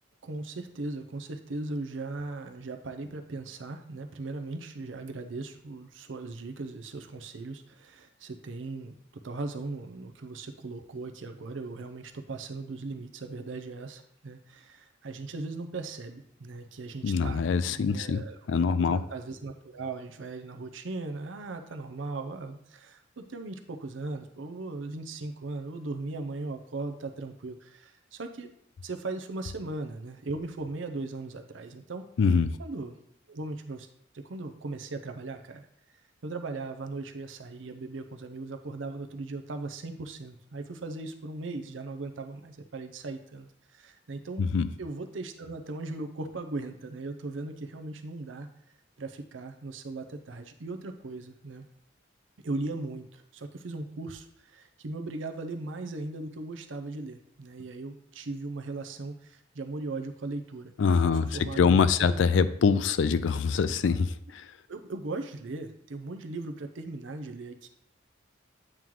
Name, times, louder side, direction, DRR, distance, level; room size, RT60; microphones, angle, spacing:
voice 1, 0.2-8.9 9.2-17.4 17.8-28.5 28.8-32.0 32.6-33.0 33.3-33.9 34.1-35.7 36.2-44.5 44.8-48.5 49.0-51.7 52.4-62.2 64.7-67.7, right 3 dB, 80° right, 7 dB, 0.6 m, -38 dB
voice 2, 17.0-18.2 18.5-19.0 32.2-32.5 44.4-44.7 60.8-61.3 61.6-64.4, left 5 dB, 80° left, 14 dB, 0.4 m, -24 dB
8.8 x 3.1 x 3.7 m, 0.72 s
head